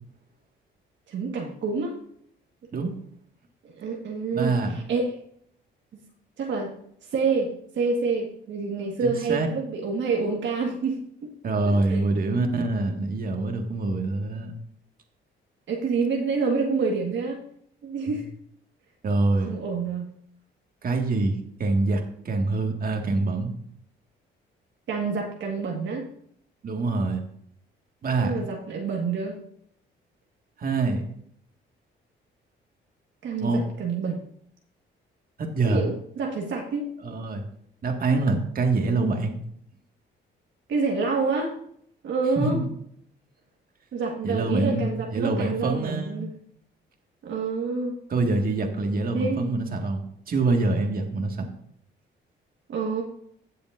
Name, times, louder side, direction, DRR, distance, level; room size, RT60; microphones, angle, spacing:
voice 1, 1.1-2.0 3.8-5.0 5.9-6.0 6.4-6.7 7.1-11.3 11.6-12.0 15.7-17.4 17.8-18.3 19.5-20.1 24.9-26.1 28.2-29.4 33.2-34.2 35.7-36.8 40.7-41.5 42.0-42.6 43.9-46.4 47.2-47.9 49.1-49.4 52.7-53.0, right 4 dB, 65° right, 0 dB, 1.7 m, -27 dB
voice 2, 4.3-4.8 9.0-9.5 11.4-14.5 19.0-19.5 20.8-23.5 26.6-27.2 28.0-28.3 30.6-31.0 33.4-33.6 35.4-35.8 37.0-37.4 37.8-39.4 42.4-42.7 44.2-46.3 48.1-50.0 50.3-51.5, right 3 dB, 45° right, 3 dB, 1.9 m, -25 dB
16.5 x 7.0 x 2.6 m, 0.67 s
cardioid pair, 90°, 20 cm